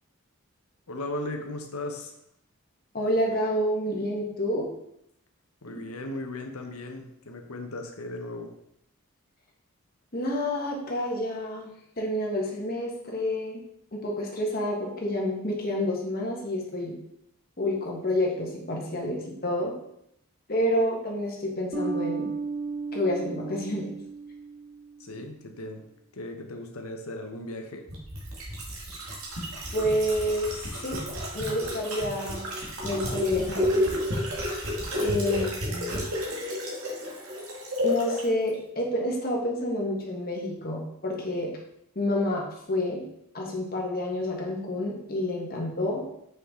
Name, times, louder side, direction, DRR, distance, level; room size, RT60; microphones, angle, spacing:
voice 1, 0.9-2.1 5.6-8.5 25.0-25.9 26.1-27.8 34.9-35.2 35.6-35.8, left 1 dB, 85° left, 4 dB, 1.0 m, -37 dB
voice 2, 2.9-4.7 10.1-11.7 12.0-13.6 13.9-17.0 17.6-19.7 20.5-22.3 22.9-23.9 29.7-31.0 31.3-32.4 32.8-33.9 35.0-36.0 37.8-41.5 41.9-43.0 43.3-46.0, left 1 dB, 45° left, -2 dB, 1.5 m, -29 dB
sound 1, 21.7-25.1, right 4 dB, 35° right, 0.9 m, -34 dB
sound 2, 27.9-38.2 38.5-38.6, left 1 dB, 75° right, 1.9 m, -31 dB
6.1 x 5.6 x 3.7 m, 0.75 s
head